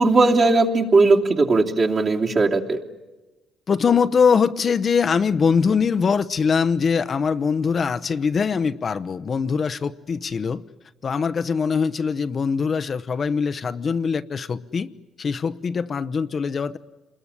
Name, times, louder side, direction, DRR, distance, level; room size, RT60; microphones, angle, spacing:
voice 1, 0.0-2.8, right 3 dB, 40° right, 0 dB, 2.9 m, -18 dB
voice 2, 3.7-10.6 11.0-14.9 15.2-16.8, left 6 dB, 40° left, 11 dB, 0.8 m, -22 dB
28.5 x 21.5 x 9.8 m, 1.1 s
cardioid pair, 110°, 0 cm